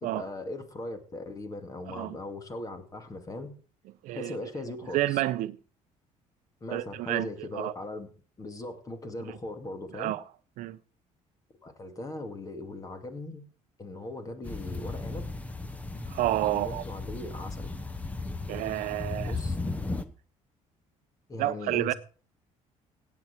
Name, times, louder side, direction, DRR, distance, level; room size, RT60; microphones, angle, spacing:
voice 1, 0.0-3.5 4.1-5.2 6.6-8.1 8.4-10.2 11.6-13.4 13.8-15.3 16.5-17.7 19.2-19.6 21.3-21.9, left 2 dB, 25° left, 2.3 m, -39 dB
voice 2, 4.0-4.5 4.9-5.6 6.7-7.7 9.9-10.2 10.6-10.8 16.1-16.8 18.5-19.4 21.4-21.9, right 15 dB, 75° right, 0.8 m, -30 dB
sound 1, 14.4-20.0, left 3 dB, 10° left, 1.2 m, -35 dB
16.5 x 8.9 x 4.5 m
cardioid pair, 115°, 13 cm